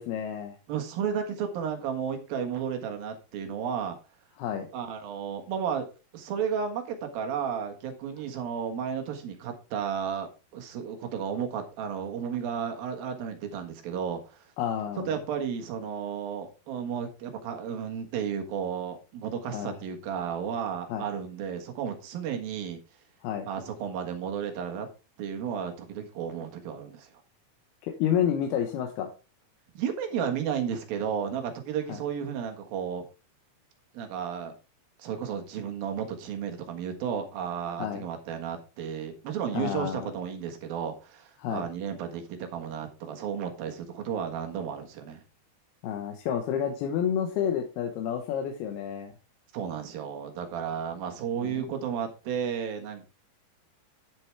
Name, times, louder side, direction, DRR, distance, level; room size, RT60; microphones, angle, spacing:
voice 1, 0.0-0.6 4.4-4.7 14.6-15.1 19.5-19.8 20.9-21.1 23.2-23.5 27.8-29.1 31.9-32.0 37.8-38.0 39.5-40.1 41.4-41.7 45.8-49.1 51.4-51.7, left 9 dB, 90° left, 4 dB, 3.1 m, -30 dB
voice 2, 0.7-4.0 4.7-5.9 6.1-14.4 15.1-22.8 23.5-24.9 25.2-27.1 29.7-33.0 33.9-34.5 35.0-45.2 49.5-53.1, right 7 dB, 70° right, 5 dB, 3.3 m, -33 dB
9.9 x 7.8 x 3.4 m, 0.31 s
omnidirectional pair, 4.4 m